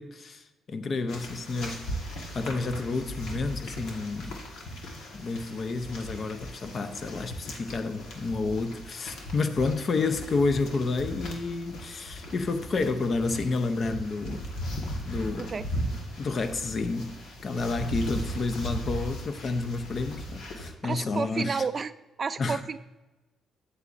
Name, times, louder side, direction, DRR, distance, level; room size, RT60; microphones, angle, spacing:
voice 1, 0.0-1.9 2.3-4.4 5.1-14.5 15.1-15.5 16.2-17.1 17.4-21.6 22.4-22.6, left 3 dB, 45° left, 0.7 m, -30 dB
sound 1, 1.1-20.7, equal, 80° left, 1.5 m, -38 dB
voice 2, 15.4-15.7 18.2-18.3 20.8-21.9 22.2-22.8, right 5 dB, 40° right, 0.3 m, -31 dB
8.4 x 7.9 x 2.6 m
cardioid pair, 90°, 0 cm